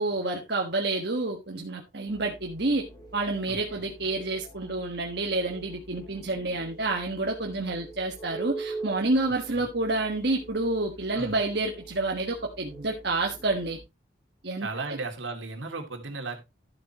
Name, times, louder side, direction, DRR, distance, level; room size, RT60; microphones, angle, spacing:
voice 1, 0.0-2.8 3.1-13.8 14.4-15.0, right 2 dB, 55° right, 1.5 m, -29 dB
sound 1, 2.1-13.8, right 3 dB, 20° left, 3.7 m, -44 dB
voice 2, 3.5-3.8 9.5-9.6 11.1-11.3 14.6-16.4, right 3 dB, 75° right, 2.6 m, -36 dB
12.5 x 7.8 x 2.9 m
head